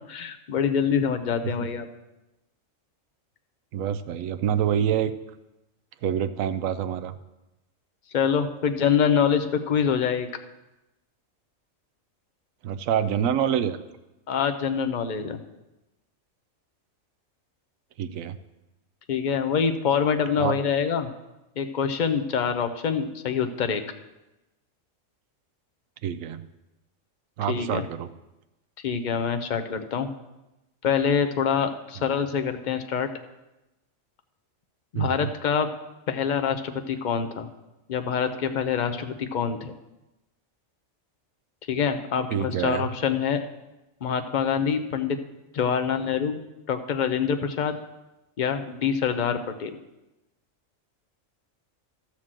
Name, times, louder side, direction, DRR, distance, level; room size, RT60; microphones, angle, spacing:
voice 1, 0.1-1.9 8.1-10.3 14.3-15.4 19.1-21.1 21.6-23.8 27.5-27.8 28.8-30.1 30.8-33.1 34.9-35.7 36.1-37.5 37.9-39.7 41.7-43.4 44.0-45.2 45.5-46.4 46.7-47.8 48.4-49.8, left 7 dB, 45° left, 7 dB, 0.7 m, -25 dB
voice 2, 3.7-5.1 6.0-7.1 12.6-13.8 18.0-18.4 20.4-20.5 26.0-26.4 27.4-28.1 34.9-35.3 42.3-42.9, right 9 dB, 85° right, 10 dB, 1.0 m, -26 dB
12.5 x 4.5 x 7.4 m, 0.98 s
omnidirectional pair, 1.4 m